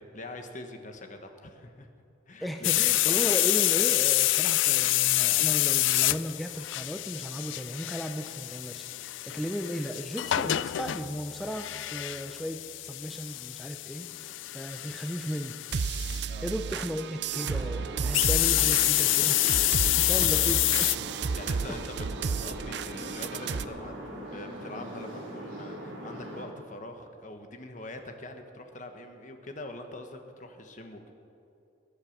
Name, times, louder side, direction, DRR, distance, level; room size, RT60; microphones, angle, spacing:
voice 1, 0.0-1.9 2.3-2.7 16.3-16.5 21.3-22.0 22.4-31.1, left 1 dB, 40° left, 6 dB, 1.3 m, -43 dB
voice 2, 2.4-15.5 16.4-21.0, equal, ahead, 4 dB, 0.5 m, -36 dB
sound 1, 2.6-16.2 18.1-21.0, left 17 dB, 80° left, 0.3 m, -27 dB
sound 2, 15.7-23.6, right 5 dB, 60° right, 0.4 m, -33 dB
sound 3, 17.3-26.4, right 1 dB, 80° right, 4.6 m, -41 dB
21.0 x 8.5 x 6.6 m, 2.6 s
head